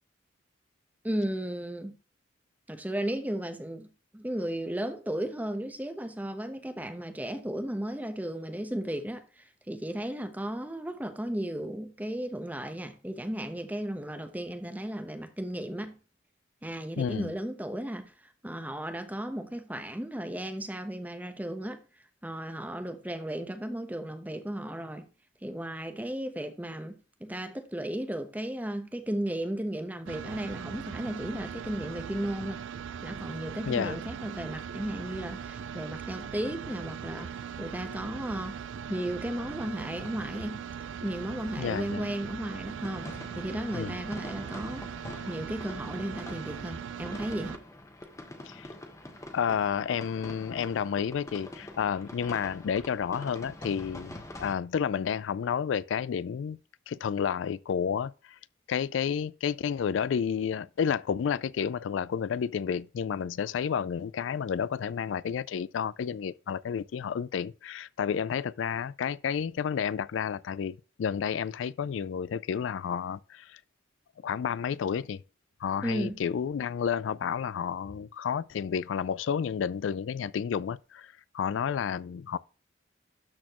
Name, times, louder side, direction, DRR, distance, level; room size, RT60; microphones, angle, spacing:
voice 1, 1.0-1.9 2.7-16.0 16.6-18.1 18.4-21.8 22.2-25.0 25.4-32.6 33.0-38.6 38.9-40.6 41.0-44.8 45.3-47.6 75.8-76.2, right 1 dB, 10° right, 0.9 m, -35 dB
voice 2, 17.0-17.3 33.7-34.0 41.6-42.0 43.7-44.0 48.5-48.7 49.3-56.6 56.9-58.4 58.7-73.6 74.2-75.2 75.6-82.4, left 7 dB, 80° left, 0.3 m, -31 dB
sound 1, 30.1-47.6, right 7 dB, 80° right, 0.4 m, -40 dB
sound 2, 42.8-54.5, left 1 dB, 15° left, 1.2 m, -45 dB
12.5 x 4.2 x 3.0 m
head